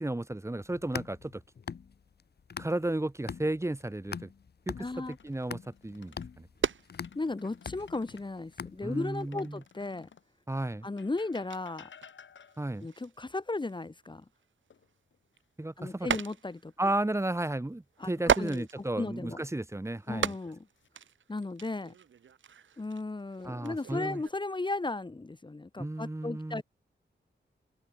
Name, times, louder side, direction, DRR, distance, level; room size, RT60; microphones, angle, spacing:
voice 1, 0.0-1.4 2.6-4.3 4.7-6.5 8.8-9.6 10.5-10.9 12.6-12.9 15.6-16.2 16.8-20.3 23.4-24.2 25.8-26.6, right 1 dB, 15° right, 2.0 m, -33 dB
sound 1, 0.6-3.0 3.3-9.2, left 6 dB, 55° left, 1.4 m, -43 dB
voice 2, 4.8-5.2 7.1-10.1 10.8-11.9 12.8-14.2 15.8-16.7 18.0-18.1 18.4-18.7 19.0-19.4 20.1-20.6 21.3-21.9 22.8-26.6, left 2 dB, 25° left, 1.4 m, -35 dB
sound 2, 5.1-6.3 6.8-8.3 9.2-10.3 11.0-12.8 14.7-15.4 15.8-16.0 18.9-19.5 20.2-20.9, left 7 dB, 80° left, 5.3 m, -55 dB
sound 3, 6.6-7.2 7.6-9.2 9.6-9.8 10.1-10.3 10.6-10.7 11.0-15.0 15.4-16.8 17.0-17.1 17.9-19.5 20.0-24.3, right 7 dB, 80° right, 2.1 m, -36 dB
open air
wide cardioid pair, 90°, 19 cm